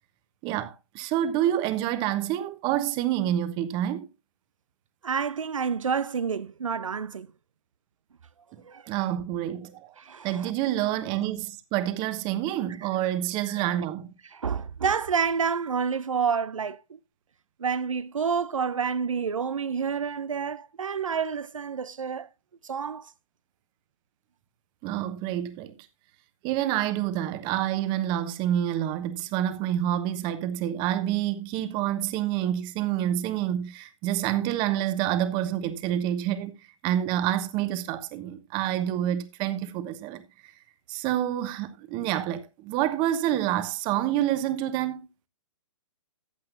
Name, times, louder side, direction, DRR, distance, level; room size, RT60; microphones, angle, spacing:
voice 1, 0.4-4.1 8.9-9.9 10.2-14.1 24.8-25.7 26.4-36.5 36.8-40.2 40.9-45.1, right 12 dB, 30° right, 1.1 m, -28 dB
voice 2, 5.0-7.3 8.6-8.9 10.0-10.5 12.8-12.9 13.5-13.6 14.3-17.0 17.6-22.3 22.6-23.1, right 6 dB, 85° right, 0.6 m, -29 dB
14.5 x 8.5 x 2.6 m
hypercardioid pair, 130°, 16 cm